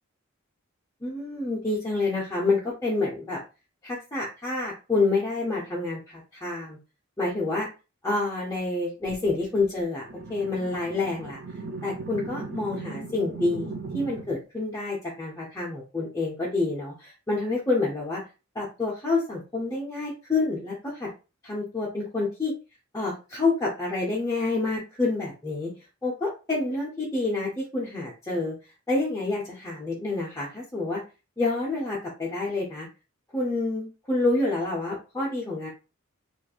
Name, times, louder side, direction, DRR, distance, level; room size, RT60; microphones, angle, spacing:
voice 1, 1.0-3.4 3.8-6.8 7.2-7.7 8.0-11.4 11.8-18.2 18.5-21.1 21.4-22.5 22.9-25.7 26.0-28.5 28.9-31.0 31.4-32.9 33.3-35.7, left 3 dB, 15° left, -6 dB, 0.6 m, -28 dB
sound 1, 10.0-14.4, right 3 dB, 50° right, 0.5 m, -38 dB
3.1 x 2.4 x 2.3 m, 0.31 s
head